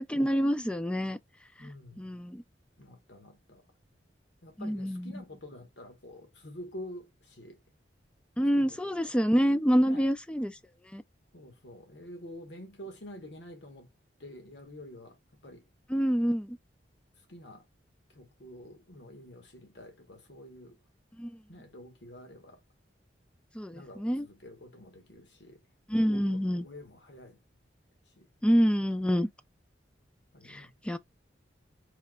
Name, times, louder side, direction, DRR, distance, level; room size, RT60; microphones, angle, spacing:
voice 1, 0.1-1.2 1.6-1.7 2.0-2.4 4.6-5.2 8.4-10.6 10.9-11.0 15.9-16.6 21.2-21.4 23.5-24.3 25.9-26.7 28.4-29.3 30.5-31.0, equal, 5° left, 0.4 m, -27 dB
voice 2, 1.6-2.2 2.8-3.6 4.4-7.6 8.6-9.1 9.8-10.0 11.3-13.9 14.2-15.6 17.3-17.6 18.1-20.7 21.5-22.6 23.7-25.6 26.1-27.4 28.2-28.3 30.3-30.7, left 1 dB, 70° left, 1.3 m, -48 dB
4.2 x 2.8 x 2.3 m
head